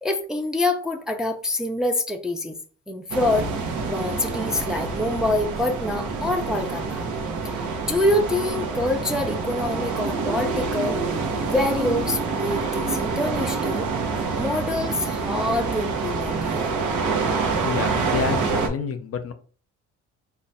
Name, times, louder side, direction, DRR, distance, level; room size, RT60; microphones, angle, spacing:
voice 1, 0.0-2.6 2.9-3.5 3.9-7.1 7.4-7.5 7.9-11.0 11.5-13.9 14.1-16.7, left 1 dB, ahead, 0.4 m, -26 dB
sound 1, 3.1-18.7, right 4 dB, 75° right, 0.8 m, -27 dB
voice 2, 17.5-19.3, left 6 dB, 50° left, 0.6 m, -29 dB
3.2 x 2.3 x 4.0 m
cardioid pair, 90°, 30 cm